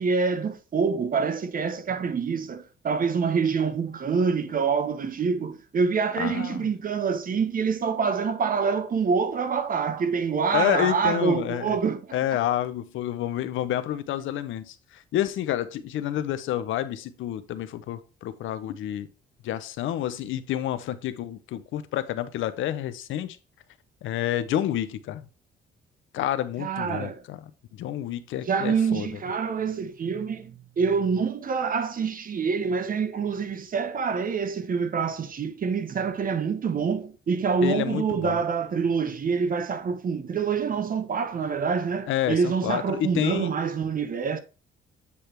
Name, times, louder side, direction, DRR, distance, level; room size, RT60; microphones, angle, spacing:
voice 1, 0.0-12.2 26.6-27.2 28.4-44.4, right 5 dB, 45° right, 1.0 m, -26 dB
voice 2, 6.2-6.7 10.5-11.8 12.1-19.1 19.4-23.4 24.0-25.3 26.1-27.4 27.7-29.1 37.6-38.4 42.1-43.5, left 12 dB, 80° left, 0.7 m, -29 dB
8.4 x 3.3 x 4.5 m
cardioid pair, 90°, 20 cm